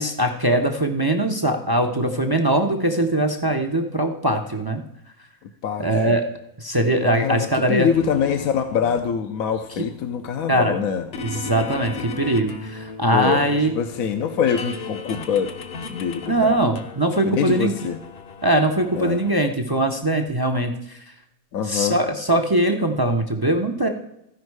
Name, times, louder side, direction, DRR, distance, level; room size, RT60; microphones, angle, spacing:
voice 1, 0.0-4.8 5.8-6.2 6.6-7.9 10.5-10.7 11.2-13.7 16.3-17.7 18.4-20.7 21.7-23.9, right 1 dB, 30° right, 4 dB, 0.4 m, -21 dB
voice 2, 5.6-6.2 7.1-11.1 13.1-15.5 15.9-16.6 17.2-18.0 19.0-19.2 21.5-22.0, left 7 dB, 75° left, 6 dB, 1.1 m, -24 dB
sound 1, 7.9-19.3, left 4 dB, 50° left, 0.9 m, -37 dB
14.5 x 5.3 x 4.7 m, 0.83 s
omnidirectional pair, 1.5 m